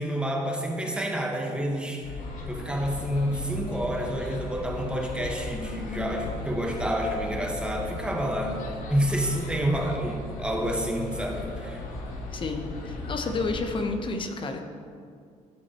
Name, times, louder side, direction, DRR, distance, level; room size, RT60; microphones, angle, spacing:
voice 1, 0.0-2.1 2.5-11.8, equal, 10° right, 1 dB, 1.4 m, -29 dB
sound 1, 2.0-13.9, left 2 dB, 80° left, 1.3 m, -36 dB
voice 2, 12.3-14.6, left 3 dB, 40° left, 5 dB, 0.9 m, -30 dB
11.5 x 8.2 x 3.0 m, 2.2 s
cardioid pair, 100°, 13 cm